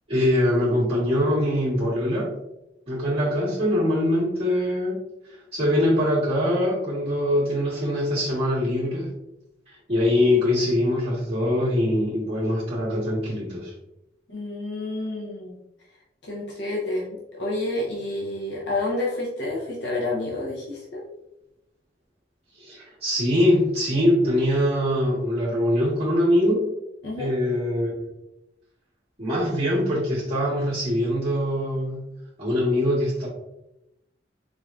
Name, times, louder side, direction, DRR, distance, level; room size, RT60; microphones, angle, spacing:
voice 1, 0.1-2.3 2.9-5.0 5.5-9.1 9.7-13.7 22.6-26.7 27.2-27.9 29.2-32.1 32.4-33.3, left 1 dB, 30° right, -10 dB, 1.4 m, -23 dB
voice 2, 14.3-15.6 16.3-21.0 27.0-27.3, left 2 dB, 70° left, -4 dB, 0.7 m, -29 dB
4.0 x 3.4 x 2.4 m, 0.90 s
head